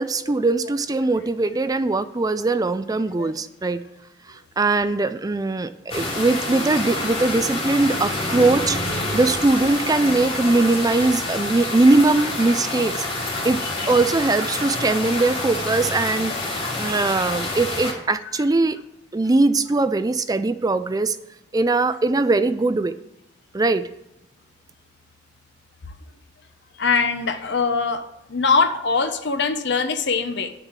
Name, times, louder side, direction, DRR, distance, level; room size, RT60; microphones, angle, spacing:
voice 1, 0.0-3.8 4.3-13.6 13.9-18.8 19.1-21.2 21.5-22.9 23.5-23.9, right 3 dB, 20° right, 12 dB, 0.4 m, -21 dB
sound 1, 5.9-17.9, left 2 dB, 30° left, 2.9 m, -27 dB
voice 2, 13.6-14.0 26.7-28.0 28.3-30.5, left 4 dB, 65° left, 8 dB, 1.1 m, -22 dB
9.9 x 6.7 x 7.3 m, 0.87 s
head